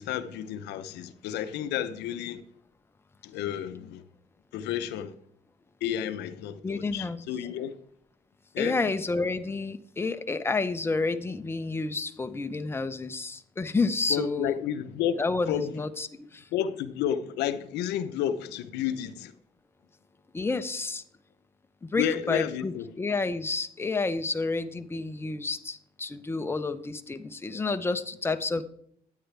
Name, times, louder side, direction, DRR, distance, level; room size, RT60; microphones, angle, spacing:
voice 1, 0.0-2.4 3.2-4.0 4.5-5.1 5.8-7.7 8.5-8.8 14.1-15.2 15.5-15.7 16.5-19.3 22.0-22.9, left 10 dB, 85° left, 0.7 m, -31 dB
voice 2, 6.6-7.2 8.6-14.6 15.2-16.5 20.3-21.0 21.8-28.6, left 3 dB, 15° left, 0.6 m, -30 dB
9.4 x 9.2 x 3.3 m
cardioid pair, 110°, 17 cm